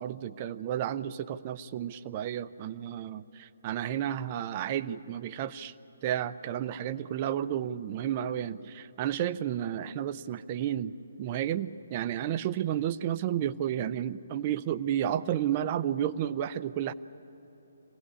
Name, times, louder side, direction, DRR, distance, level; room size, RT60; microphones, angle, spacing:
voice 1, 0.0-5.7 6.0-10.9 11.2-16.9, right 10 dB, 30° right, 14 dB, 0.6 m, -32 dB
25.0 x 17.5 x 9.9 m, 3.0 s
figure-of-eight pair, 135°, 0 cm